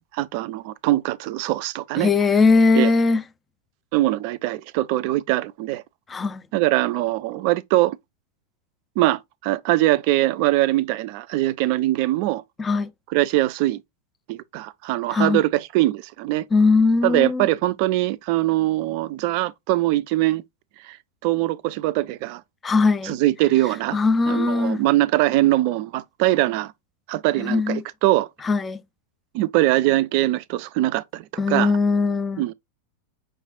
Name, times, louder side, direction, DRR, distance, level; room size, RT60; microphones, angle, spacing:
voice 1, 0.1-2.1 2.7-2.9 3.9-5.8 6.5-8.0 9.0-12.4 13.1-13.8 14.3-16.5 17.0-20.4 20.8-21.0 21.2-22.4 23.0-24.0 24.3-26.7 27.1-28.3 29.3-31.7 32.4-32.5, right 16 dB, 45° right, 0.4 m, -22 dB
voice 2, 2.0-3.2 6.1-6.4 12.6-12.9 15.1-15.4 16.5-17.5 22.6-23.2 23.9-24.8 27.4-27.8 28.4-28.8 31.4-32.4, left 4 dB, 15° left, 0.5 m, -20 dB
5.8 x 3.2 x 2.4 m
figure-of-eight pair, 90°, 0 cm